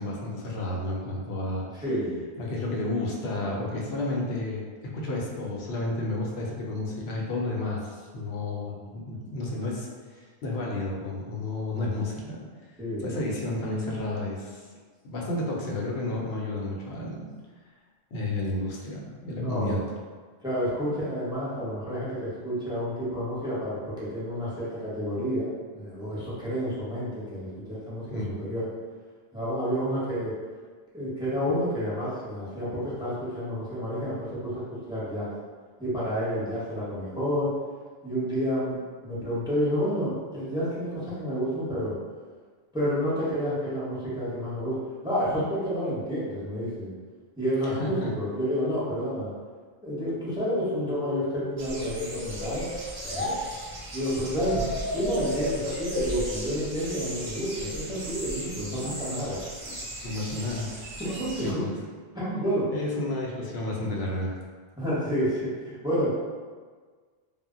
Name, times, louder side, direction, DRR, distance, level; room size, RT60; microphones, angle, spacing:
voice 1, 0.0-1.6 2.4-9.9 10.4-12.4 13.0-14.6 15.0-17.3 18.1-19.8 28.1-28.4 47.8-48.1 60.0-61.0 61.4-61.7 62.7-64.3, left 2 dB, 85° left, -3 dB, 0.8 m, -31 dB
voice 2, 1.7-2.2 12.8-13.1 19.3-19.8 20.4-28.7 29.3-30.3 30.9-35.3 35.8-37.5 38.0-41.9 42.7-44.8 45.0-46.9 47.4-49.3 49.8-52.7 53.0-53.4 53.9-54.6 54.9-59.4 61.0-61.6 62.1-62.7 64.8-66.1, equal, 5° right, -10 dB, 0.7 m, -30 dB
sound 1, 50.5-53.3 54.4-57.4, left 2 dB, 50° left, 0.5 m, -34 dB
sound 2, 51.6-61.5, right 1 dB, 50° right, 0.6 m, -38 dB
2.1 x 2.0 x 3.6 m, 1.5 s
omnidirectional pair, 1.0 m